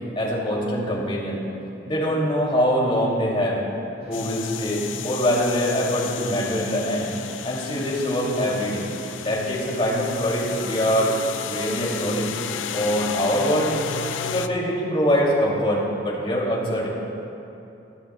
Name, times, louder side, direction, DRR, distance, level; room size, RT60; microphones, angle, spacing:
voice 1, 0.2-1.4 1.9-3.6 4.1-7.1 7.4-8.8 9.2-11.2 11.4-12.3 12.7-13.7 14.3-16.9, equal, 30° left, -5 dB, 2.9 m, -23 dB
sound 1, 4.0-11.6, equal, 55° right, 2.1 m, -41 dB
sound 2, 4.1-14.5, left 8 dB, 90° left, 0.4 m, -33 dB
21.0 x 13.0 x 2.4 m, 2.9 s
head